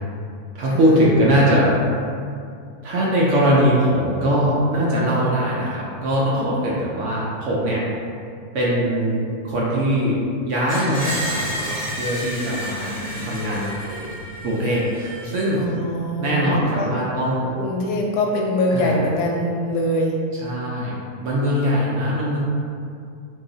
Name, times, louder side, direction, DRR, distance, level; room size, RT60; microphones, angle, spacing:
voice 1, 0.5-1.7 2.8-7.8 8.5-10.2 10.5-14.1 14.4-15.7 16.2-17.6 18.7-19.0 20.4-22.4, equal, 65° right, -6 dB, 0.8 m, -21 dB
Screech, 10.7-15.6, equal, 25° right, 0.7 m, -31 dB
voice 2, 12.8-13.3 15.6-16.9 17.6-20.2, left 1 dB, 90° left, -1 dB, 1.1 m, -24 dB
2.7 x 2.3 x 3.8 m, 2.3 s
omnidirectional pair, 1.6 m